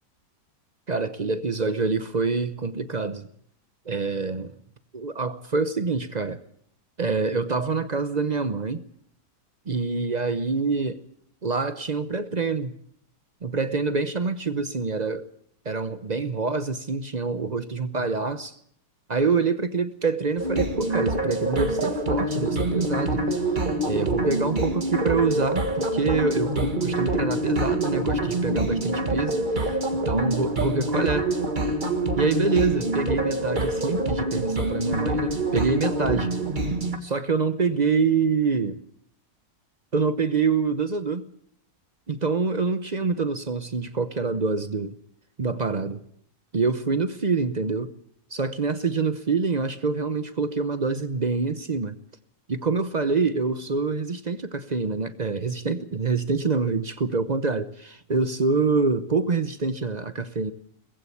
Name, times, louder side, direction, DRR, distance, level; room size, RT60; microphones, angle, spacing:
voice 1, 0.9-3.3 3.9-4.6 4.9-6.4 7.0-8.8 9.7-11.0 11.4-12.7 13.4-15.3 15.6-18.6 19.1-23.2 23.8-31.3 32.2-36.3 37.0-38.8 39.9-41.3 42.1-45.0 45.4-46.0 46.5-47.9 48.3-52.0 52.5-60.5, right 4 dB, 45° right, 0.5 m, -26 dB
sound 1, 20.4-37.0, right 1 dB, 30° right, 1.7 m, -26 dB
20.0 x 15.5 x 8.4 m
omnidirectional pair, 1.9 m